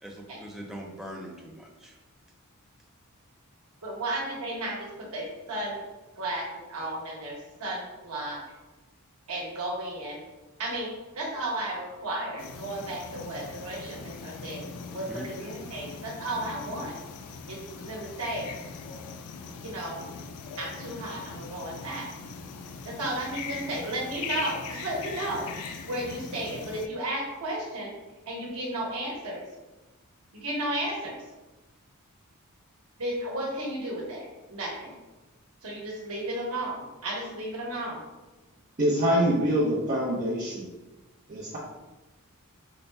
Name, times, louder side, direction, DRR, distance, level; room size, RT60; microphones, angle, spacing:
voice 1, 0.0-2.0 15.1-15.3, equal, ahead, -1 dB, 0.4 m, -41 dB
voice 2, 3.8-5.8 6.2-8.4 9.3-10.2 10.6-10.9 11.1-14.6 14.9-16.9 17.5-18.5 19.6-20.0 20.6-22.2 22.8-25.5 25.8-27.9 28.3-29.4 30.3-31.2 33.0-34.9 35.6-38.0, right 1 dB, 80° right, -3 dB, 1.1 m, -34 dB
sound 1, 12.4-26.9, left 5 dB, 80° left, 0.3 m, -40 dB
voice 3, 38.8-40.7 41.3-41.6, equal, 35° right, -9 dB, 0.7 m, -25 dB
4.0 x 2.2 x 3.3 m, 1.1 s
head